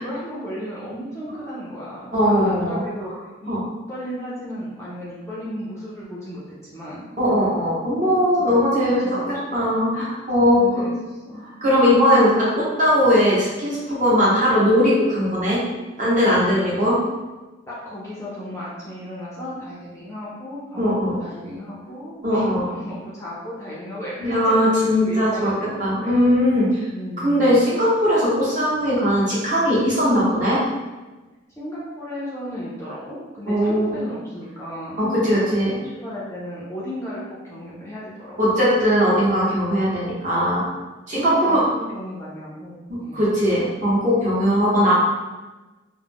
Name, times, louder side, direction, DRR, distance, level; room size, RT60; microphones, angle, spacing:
voice 1, 0.0-3.1 3.4-3.5 3.9-7.0 8.5-8.6 9.0-9.7 10.4-10.9 11.3-11.4 16.2-16.7 17.7-26.2 26.9-27.5 31.6-35.5 35.8-38.6 41.1-43.2, equal, 15° left, -7 dB, 0.4 m, -34 dB
voice 2, 2.1-2.8 3.5-3.6 7.2-10.8 11.6-15.6 16.0-17.0 20.8-21.2 22.2-22.7 24.2-25.5 25.8-26.8 27.2-30.6 33.5-34.0 35.0-35.8 38.4-40.6 41.1-41.6 42.9-44.9, equal, 40° right, -7 dB, 0.8 m, -19 dB
2.3 x 2.0 x 3.4 m, 1.2 s
head